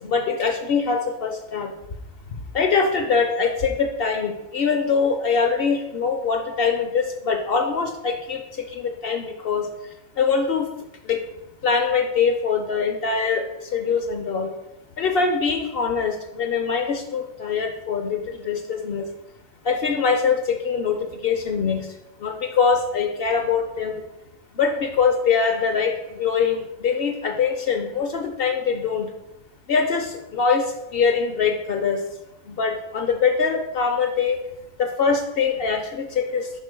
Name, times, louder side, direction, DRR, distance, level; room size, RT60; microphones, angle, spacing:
voice 1, 0.0-1.7 2.5-9.7 10.2-10.7 11.0-11.2 11.6-14.5 15.0-19.1 19.6-24.0 24.5-29.1 29.7-32.0 32.5-34.4 34.8-36.5, left 5 dB, 55° left, 4 dB, 0.7 m, -23 dB
5.4 x 4.9 x 5.0 m, 0.92 s
omnidirectional pair, 1.5 m